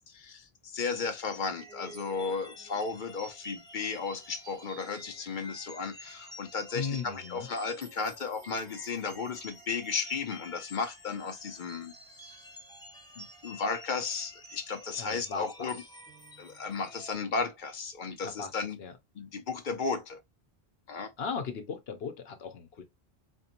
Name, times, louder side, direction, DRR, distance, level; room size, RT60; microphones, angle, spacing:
voice 1, 0.1-11.9 12.2-12.4 13.2-15.8 16.4-18.8 19.2-20.2 20.9-21.1, left 5 dB, 55° left, 0.8 m, -34 dB
sound 1, 0.8-17.1, equal, 5° left, 0.9 m, -50 dB
voice 2, 6.7-7.5 15.0-15.7 18.2-18.5 18.8-18.9 21.2-22.8, left 5 dB, 70° left, 1.0 m, -37 dB
4.3 x 2.9 x 2.5 m
omnidirectional pair, 1.1 m